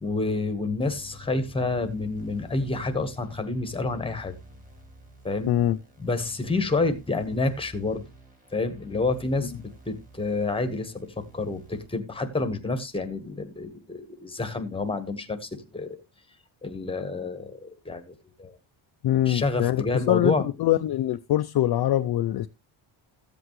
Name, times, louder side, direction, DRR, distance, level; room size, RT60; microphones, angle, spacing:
voice 1, 0.0-4.3 5.2-5.5 6.0-8.0 8.5-16.0 16.6-18.6 19.3-20.4, left 3 dB, 10° left, 1.1 m, -29 dB
sound 1, 0.8-11.9, right 2 dB, 15° right, 2.3 m, -51 dB
voice 2, 5.5-5.8 19.0-22.5, left 13 dB, 55° left, 0.5 m, -23 dB
14.5 x 8.0 x 3.1 m
wide cardioid pair, 170°, 48 cm